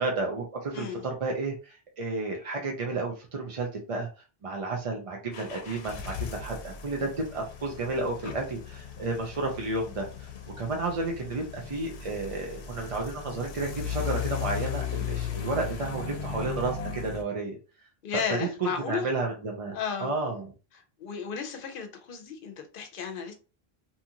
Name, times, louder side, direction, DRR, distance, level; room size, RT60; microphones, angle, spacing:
voice 1, 0.0-4.1 4.4-10.3 10.6-17.6 18.1-19.7 20.0-20.5, right 3 dB, 40° right, 0.5 m, -32 dB
voice 2, 0.7-1.0 18.0-19.1 19.7-20.1 21.0-23.3, left 6 dB, 60° left, 0.8 m, -33 dB
sound 1, 5.3-17.2, left 8 dB, 90° left, 0.8 m, -37 dB
2.7 x 2.4 x 2.8 m
omnidirectional pair, 1.0 m